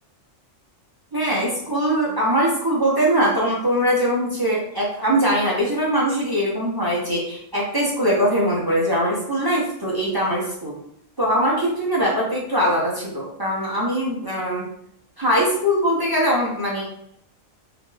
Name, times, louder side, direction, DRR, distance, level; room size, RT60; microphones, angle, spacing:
voice 1, 1.1-10.8 11.2-14.7 15.2-16.8, equal, 20° right, -6 dB, 0.6 m, -21 dB
2.8 x 2.5 x 3.8 m, 0.71 s
omnidirectional pair, 1.3 m